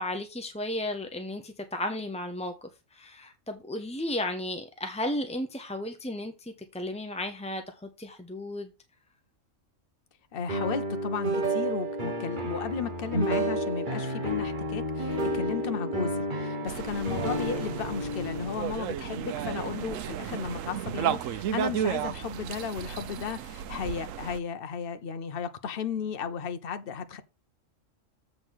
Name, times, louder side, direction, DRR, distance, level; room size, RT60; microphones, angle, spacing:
voice 1, 0.0-8.7, left 1 dB, 5° left, 0.6 m, -34 dB
voice 2, 10.3-27.2, left 6 dB, 50° left, 1.0 m, -34 dB
sound 1, 10.5-20.4, right 1 dB, 40° right, 1.4 m, -31 dB
sound 2, 16.7-24.4, right 10 dB, 90° right, 1.0 m, -33 dB
7.6 x 3.9 x 6.3 m
omnidirectional pair, 1.3 m